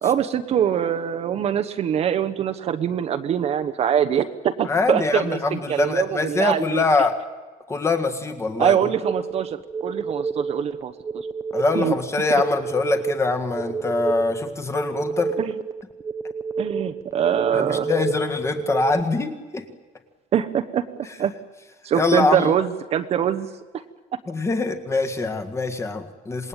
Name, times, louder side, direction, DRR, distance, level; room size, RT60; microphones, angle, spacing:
voice 1, 0.0-6.8 8.6-11.3 11.7-11.9 12.3-12.4 15.4-15.5 16.6-17.9 20.3-21.3 21.8-23.5, right 9 dB, 40° right, 8 dB, 1.1 m, -23 dB
voice 2, 4.7-7.2 7.7-8.9 11.5-15.4 17.5-19.7 21.9-22.5 24.3-26.5, left 3 dB, 15° left, 6 dB, 1.9 m, -23 dB
sound 1, 9.0-19.0, right 5 dB, 20° right, 1.0 m, -29 dB
27.0 x 20.0 x 9.0 m, 1.3 s
cardioid pair, 175°, 16 cm